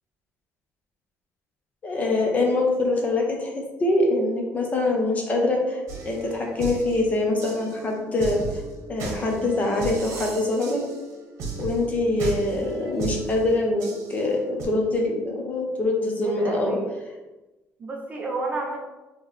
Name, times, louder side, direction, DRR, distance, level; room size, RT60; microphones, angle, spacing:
voice 1, 1.8-5.8 6.1-8.6 8.9-10.8 11.6-16.8, left 2 dB, 25° left, 0 dB, 0.7 m, -24 dB
sound 1, 5.9-14.6, right 3 dB, 55° right, 1.0 m, -36 dB
voice 2, 16.2-16.9 17.8-18.8, right 3 dB, 25° right, 0 dB, 0.5 m, -30 dB
4.6 x 3.0 x 3.3 m, 1.1 s
cardioid pair, 170°, 6 cm